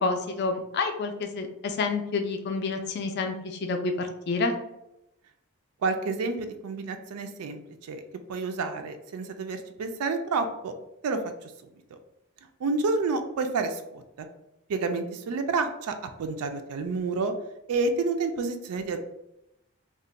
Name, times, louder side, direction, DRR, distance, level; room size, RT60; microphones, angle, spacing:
voice 1, 0.0-4.6, left 3 dB, 50° left, 5 dB, 0.3 m, -29 dB
voice 2, 5.8-8.0 8.3-10.7 11.0-11.5 11.9-12.0 12.6-14.3 14.7-17.3 17.7-19.0, right 3 dB, 85° right, 7 dB, 0.4 m, -29 dB
2.4 x 2.1 x 3.9 m, 0.87 s
head